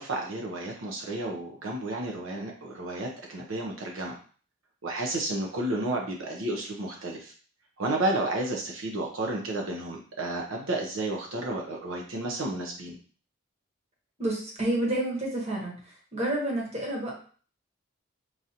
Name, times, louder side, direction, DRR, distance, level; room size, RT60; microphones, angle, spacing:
voice 1, 0.0-4.2 4.8-7.3 7.8-13.0, right 2 dB, 75° right, 0 dB, 0.6 m, -32 dB
voice 2, 14.2-15.7 16.1-17.1, right 1 dB, 30° right, -3 dB, 1.0 m, -29 dB
4.7 x 2.5 x 2.8 m, 0.42 s
head